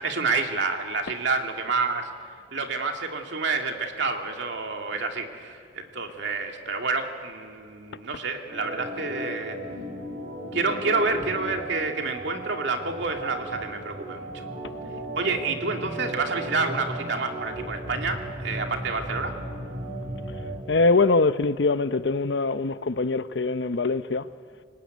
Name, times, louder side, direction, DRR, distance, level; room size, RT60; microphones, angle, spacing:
voice 1, 0.0-2.1 2.5-9.6 10.5-14.5 15.2-19.4, right 3 dB, 75° right, 2.4 m, -28 dB
Organ, 8.5-20.6, right 1 dB, 55° right, 7.3 m, -36 dB
voice 2, 20.7-24.2, left 3 dB, 75° left, 0.7 m, -23 dB
25.0 x 19.5 x 9.4 m
head